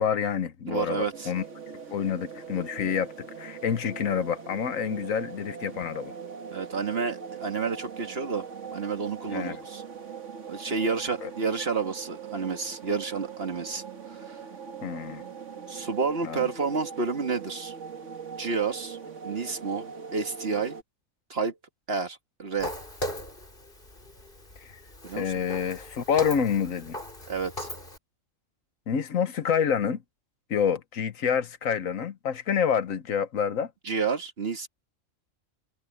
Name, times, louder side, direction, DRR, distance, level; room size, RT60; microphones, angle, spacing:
voice 1, 0.0-1.4 1.9-3.1 3.4-6.1 9.3-9.6 11.2-11.3 14.8-15.2 16.2-16.4 24.6-24.8 25.1-27.0 28.9-30.0 30.5-33.7, left 7 dB, 85° left, 1.4 m, -28 dB
voice 2, 0.7-1.3 6.5-8.4 8.7-9.8 10.5-13.8 14.1-14.4 15.7-17.7 18.4-19.0 19.2-20.8 21.3-21.6 21.9-22.7 25.0-25.3 27.3-27.7 33.9-34.7, right 5 dB, 50° right, 1.9 m, -30 dB
sound 1, 1.1-20.8, right 6 dB, 65° right, 2.0 m, -41 dB
Walk footsteps, 22.6-28.0, equal, 40° left, 4.2 m, -39 dB
omnidirectional pair, 1.4 m